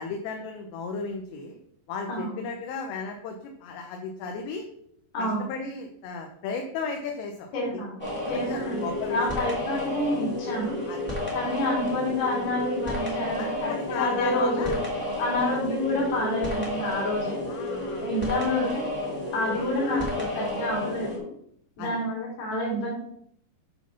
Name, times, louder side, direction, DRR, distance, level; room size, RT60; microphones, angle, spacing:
voice 1, 0.0-1.6 1.9-3.4 3.6-4.6 5.2-7.5 8.3-9.2 10.9-11.0 13.4-14.7 17.5-18.1 19.6-20.1 21.8-21.9, left 5 dB, 80° left, 3 dB, 3.0 m, -35 dB
voice 2, 2.1-2.4 5.1-5.5 7.5-8.0 8.3-10.8 11.3-14.8 15.2-17.4 18.0-18.8 19.3-21.2 21.8-22.9, left 1 dB, 65° left, -2 dB, 4.5 m, -28 dB
sound 1, 8.0-21.2, left 1 dB, 5° left, 1.3 m, -31 dB
9.2 x 4.1 x 5.8 m, 0.70 s
omnidirectional pair, 5.1 m